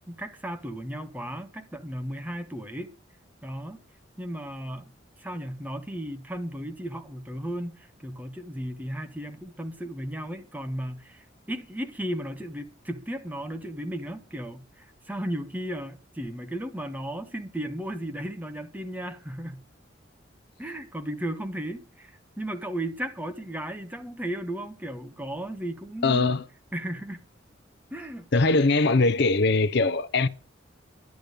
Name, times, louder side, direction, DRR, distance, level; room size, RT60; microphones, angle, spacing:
voice 1, 0.1-2.9 3.4-3.8 4.2-4.9 5.2-19.6 20.6-26.4 26.7-27.3 27.9-28.3, right 1 dB, 10° right, 1.3 m, -35 dB
voice 2, 26.0-26.4 28.3-30.3, left 3 dB, 60° left, 0.7 m, -21 dB
11.5 x 10.5 x 6.7 m
head